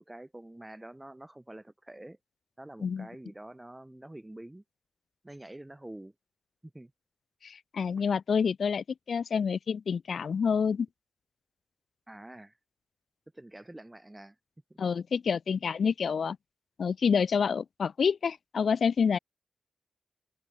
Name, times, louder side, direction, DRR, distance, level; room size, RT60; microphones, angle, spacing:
voice 1, 0.0-2.2 2.6-4.6 5.2-6.1 6.6-6.9 12.1-12.6 13.3-14.4 14.7-14.8, right 1 dB, 15° right, 1.8 m, -47 dB
voice 2, 7.4-10.9 14.8-16.4 16.8-19.2, left 6 dB, 70° left, 0.4 m, -28 dB
open air
cardioid pair, 55°, 0 cm